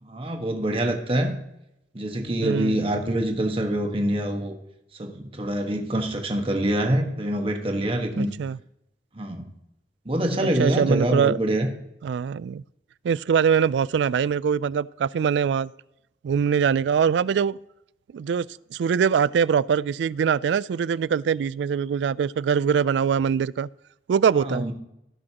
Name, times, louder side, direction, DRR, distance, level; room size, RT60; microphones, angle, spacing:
voice 1, 0.0-1.4 1.9-4.5 4.9-8.3 9.1-9.5 10.0-11.7 24.4-24.7, right 1 dB, 30° right, 1.3 m, -25 dB
voice 2, 2.4-2.8 8.1-8.6 10.4-11.4 12.0-12.6 13.0-15.7 16.2-17.6 18.1-18.5 18.7-23.7 24.1-24.7, right 7 dB, 80° right, 0.3 m, -23 dB
17.0 x 6.3 x 2.9 m
head